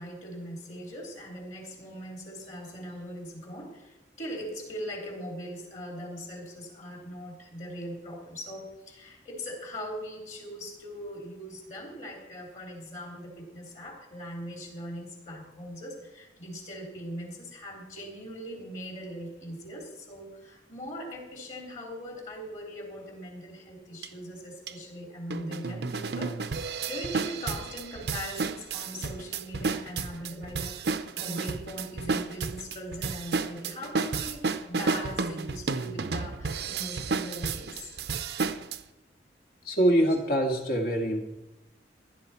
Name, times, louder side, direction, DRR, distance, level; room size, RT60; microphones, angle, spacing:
voice 1, 0.0-26.4 26.9-37.9, equal, 45° left, -1 dB, 3.5 m, -40 dB
sound 1, 24.0-24.1 24.7-24.8 25.3-38.8, right 4 dB, 70° right, 0.7 m, -32 dB
voice 2, 39.7-41.2, right 1 dB, 60° left, 2 dB, 1.9 m, -24 dB
16.0 x 10.5 x 4.4 m, 0.98 s
head